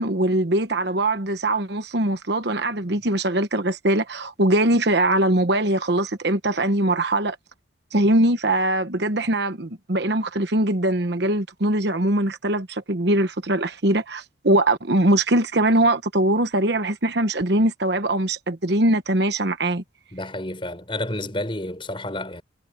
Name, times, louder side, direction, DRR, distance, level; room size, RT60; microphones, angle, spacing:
voice 1, 0.0-7.4 7.9-19.8, right 1 dB, 60° right, 1.2 m, -22 dB
voice 2, 20.1-22.4, left 1 dB, 25° left, 5.8 m, -30 dB
head